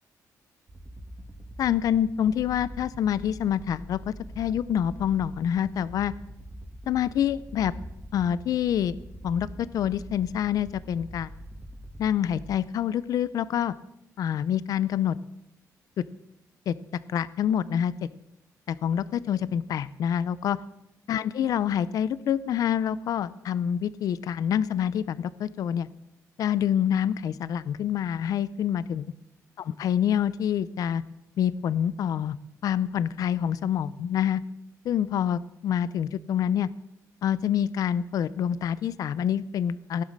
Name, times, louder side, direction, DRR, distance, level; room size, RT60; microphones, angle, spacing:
sound 1, 0.7-12.6, right 1 dB, 35° right, 1.9 m, -43 dB
voice 1, 1.6-6.1 6.9-7.7 8.1-8.9 9.2-11.3 12.0-13.7 14.2-15.2 16.0-16.1 16.7-16.8 17.1-17.9 18.7-20.6 21.1-25.9 26.4-29.1 29.6-31.0 31.4-32.4 32.6-34.4 34.8-36.7 37.2-40.0, left 9 dB, 75° left, 16 dB, 0.6 m, -26 dB
16.5 x 11.5 x 6.6 m, 0.85 s
cardioid pair, 120°, 6 cm